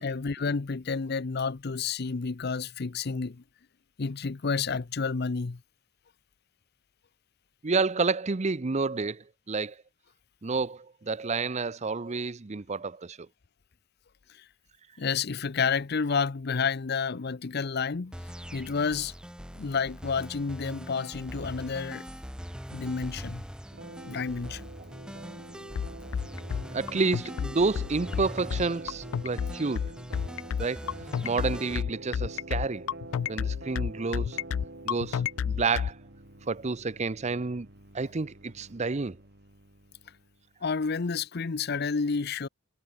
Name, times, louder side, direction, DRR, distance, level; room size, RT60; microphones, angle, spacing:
voice 1, 0.0-3.4 4.0-5.6 15.0-18.1 18.5-19.1 19.5-22.1 22.7-23.4 24.0-24.7 40.6-42.5, left 5 dB, 55° left, 0.7 m, -30 dB
voice 2, 7.6-9.8 10.4-13.3 26.7-29.9 30.6-30.9 31.2-32.9 33.3-34.4 34.8-36.0 36.5-37.7 37.9-39.2, right 4 dB, 35° right, 0.6 m, -29 dB
sound 1, 18.1-31.8, equal, 5° right, 6.2 m, -42 dB
sound 2, 23.7-40.5, right 2 dB, 60° right, 3.2 m, -47 dB
sound 3, 25.8-35.9, left 8 dB, 85° left, 0.3 m, -30 dB
head